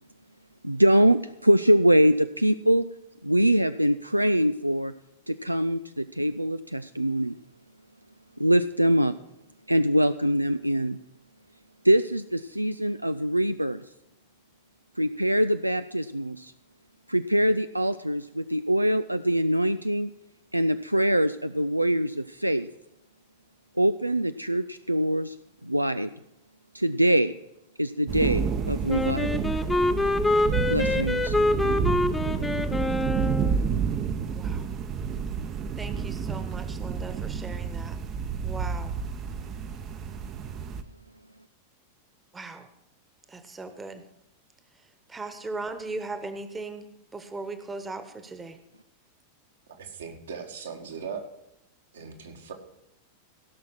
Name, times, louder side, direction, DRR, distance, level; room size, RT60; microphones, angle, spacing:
voice 1, 0.6-2.9 3.2-4.9 5.3-7.3 8.4-9.1 9.7-11.0 11.8-13.8 15.0-16.5 17.1-20.1 20.5-22.7 23.8-25.3 25.6-26.1 26.7-27.3 27.8-29.4 30.7-31.4, right 1 dB, 85° right, 11 dB, 0.3 m, -23 dB
sound 1, 28.1-40.8, right 6 dB, 30° right, 0.8 m, -30 dB
Wind instrument woodwind instrument, 28.9-33.6, left 2 dB, 10° left, 0.7 m, -26 dB
voice 2, 34.3-34.7 35.8-38.0 38.4-38.9 42.3-42.7 43.3-44.0 45.1-46.8 47.1-48.6, right 3 dB, 15° right, 9 dB, 1.2 m, -38 dB
voice 3, 49.7-51.2 51.9-52.5, right 6 dB, 65° right, 3 dB, 1.8 m, -38 dB
16.5 x 6.1 x 6.1 m, 0.87 s
figure-of-eight pair, 90°, 0 cm